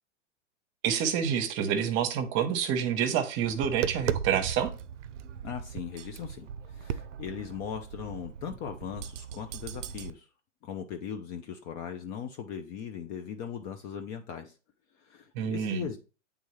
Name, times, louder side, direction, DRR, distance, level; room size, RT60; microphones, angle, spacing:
voice 1, 0.8-4.7 15.3-15.9, right 8 dB, 35° right, 9 dB, 1.0 m, -28 dB
Tap, 3.4-10.1, right 8 dB, 75° right, 0.6 m, -37 dB
voice 2, 5.4-10.3 10.6-14.5 15.0-16.0, left 8 dB, 25° left, 6 dB, 0.4 m, -39 dB
8.1 x 3.7 x 3.1 m, 0.34 s
hypercardioid pair, 120°, 36 cm